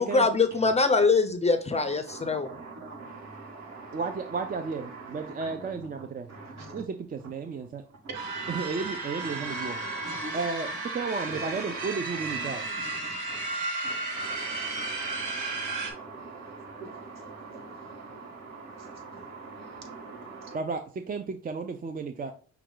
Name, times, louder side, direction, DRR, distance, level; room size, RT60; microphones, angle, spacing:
voice 1, 0.0-2.5, left 4 dB, 20° left, 0.5 m, -23 dB
voice 2, 2.1-4.0 5.1-5.5 8.1-8.5 9.3-10.4 13.3-13.4 13.8-20.6, right 3 dB, 60° right, 1.7 m, -43 dB
voice 3, 3.9-6.3 6.7-6.8 7.1-7.8 8.5-9.8 10.3-12.7 20.5-22.3, right 4 dB, 30° right, 0.5 m, -33 dB
sound 1, 8.1-15.9, right 3 dB, 90° right, 1.4 m, -34 dB
5.9 x 2.3 x 3.8 m
cardioid pair, 90°, 30 cm